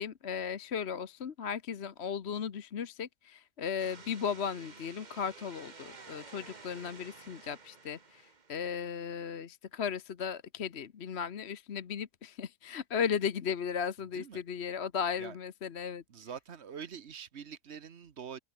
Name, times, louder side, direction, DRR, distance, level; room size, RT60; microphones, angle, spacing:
voice 1, 0.0-16.0, left 7 dB, 55° left, 1.2 m, -36 dB
sound 1, 3.8-9.0, right 4 dB, 35° right, 1.5 m, -52 dB
voice 2, 16.1-18.4, right 7 dB, 55° right, 1.3 m, -45 dB
omnidirectional pair, 1.4 m